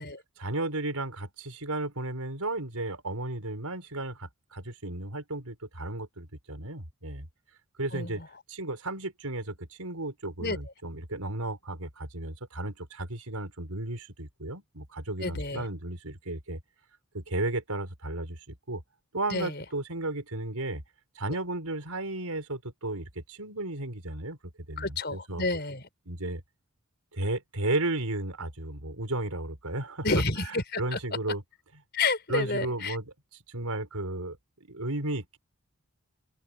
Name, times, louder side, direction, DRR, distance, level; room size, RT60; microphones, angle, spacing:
voice 1, 0.4-7.3 7.8-8.2 8.5-16.6 17.1-18.8 19.1-20.8 21.2-25.4 26.1-26.4 27.1-30.1 30.5-31.4 32.3-33.1 33.5-35.4, right 2 dB, 85° right, 5.3 m, -34 dB
voice 2, 7.9-8.3 10.4-10.6 15.2-15.7 19.3-19.6 24.8-25.8 30.0-31.0 31.9-33.0, left 3 dB, 45° left, 5.5 m, -30 dB
open air
head